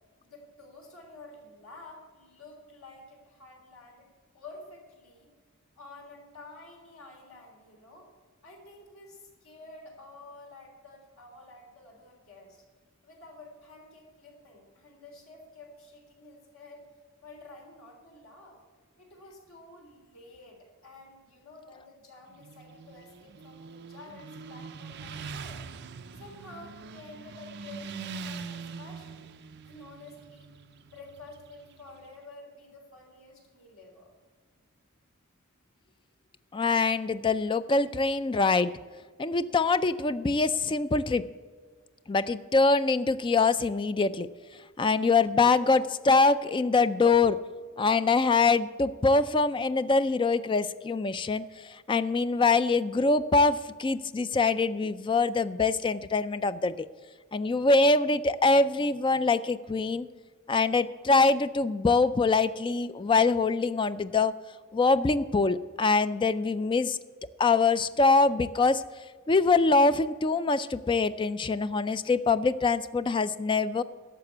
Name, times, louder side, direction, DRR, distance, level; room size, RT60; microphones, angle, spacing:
voice 1, 0.2-4.1 4.3-5.3 5.8-8.1 8.4-12.6 13.0-16.8 17.2-18.6 19.0-25.6 26.2-29.2 29.6-30.5 30.8-34.1, left 2 dB, 70° left, 0 dB, 3.6 m, -50 dB
Motorcycle, 22.3-32.1, right 5 dB, 50° right, 0.5 m, -43 dB
voice 2, 36.5-38.7 39.2-41.2 42.1-44.3 44.8-47.4 47.8-56.9 57.3-60.1 60.5-64.3 64.7-67.0 67.4-73.8, left 3 dB, 20° left, 13 dB, 0.3 m, -24 dB
11.5 x 7.0 x 8.3 m, 1.5 s
head